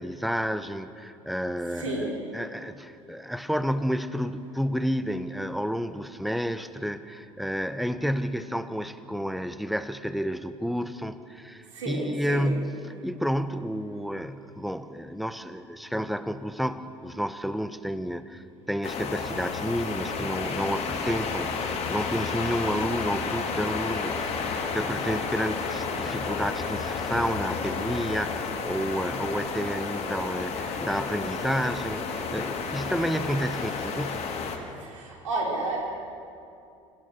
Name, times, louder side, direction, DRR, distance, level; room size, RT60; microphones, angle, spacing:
voice 1, 0.0-34.3, equal, ahead, 12 dB, 1.0 m, -30 dB
voice 2, 1.7-2.1 11.7-12.5 34.8-35.8, right 2 dB, 75° right, -2 dB, 5.1 m, -31 dB
sound 1, 18.8-34.6, left 5 dB, 40° left, 3.0 m, -31 dB
27.0 x 14.5 x 6.9 m, 2.5 s
figure-of-eight pair, 65°, 17 cm